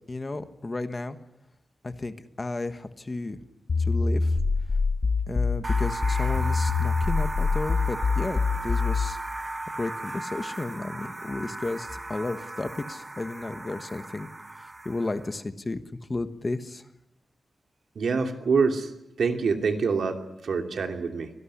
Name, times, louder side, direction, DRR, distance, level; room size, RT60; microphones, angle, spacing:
voice 1, 0.1-1.2 1.8-3.4 3.8-4.4 5.3-9.2 9.8-14.3 14.8-15.8 16.1-16.8, left 2 dB, 25° left, 9 dB, 1.3 m, -33 dB
sound 1, 3.7-9.2, left 4 dB, 45° left, 1.2 m, -25 dB
sound 2, 5.6-15.4, right 2 dB, 20° right, 1.2 m, -36 dB
voice 2, 17.9-18.9 19.2-21.3, right 5 dB, 75° right, 4 dB, 2.9 m, -26 dB
24.5 x 18.0 x 9.9 m, 0.88 s
wide cardioid pair, 180°, 0 cm